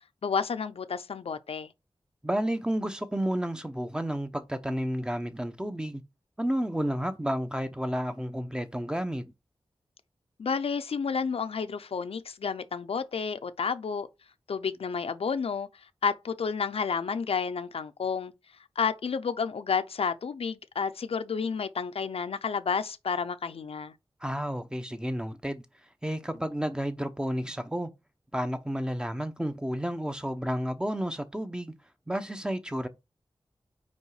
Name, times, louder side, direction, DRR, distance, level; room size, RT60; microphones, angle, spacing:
voice 1, 0.2-1.7 10.4-14.1 14.5-18.3 18.8-23.9, left 6 dB, 90° left, 0.6 m, -31 dB
voice 2, 2.2-6.0 6.4-9.3 24.2-25.6 26.0-27.9 28.3-31.7 32.1-32.9, equal, 10° right, 0.8 m, -31 dB
5.3 x 4.9 x 4.8 m
wide cardioid pair, 90°, 10 cm